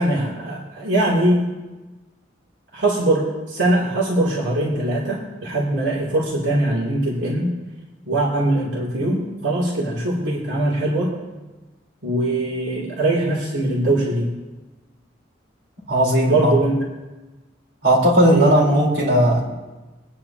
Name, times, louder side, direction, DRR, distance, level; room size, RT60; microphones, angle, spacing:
voice 1, 0.0-1.4 2.7-7.5 8.0-11.1 12.0-14.3 16.2-16.7 18.3-18.5, right 1 dB, 75° right, -5 dB, 3.0 m, -21 dB
voice 2, 15.9-16.5 17.8-19.4, equal, 60° right, -4 dB, 4.1 m, -16 dB
25.5 x 9.8 x 2.9 m, 1.2 s
head